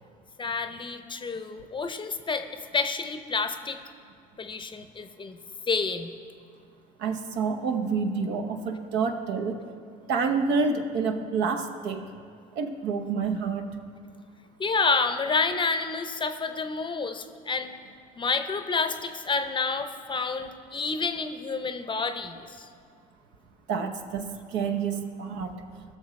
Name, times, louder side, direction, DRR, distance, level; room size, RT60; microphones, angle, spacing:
voice 1, 0.4-3.8 4.4-5.4 5.7-6.1 14.6-17.7 18.2-22.7, left 4 dB, 25° left, 8 dB, 0.7 m, -29 dB
voice 2, 7.0-9.6 10.1-12.0 12.6-13.7 23.7-25.5, right 5 dB, 65° right, 6 dB, 0.9 m, -28 dB
17.0 x 6.5 x 3.2 m, 2.2 s
hypercardioid pair, 75°, 19 cm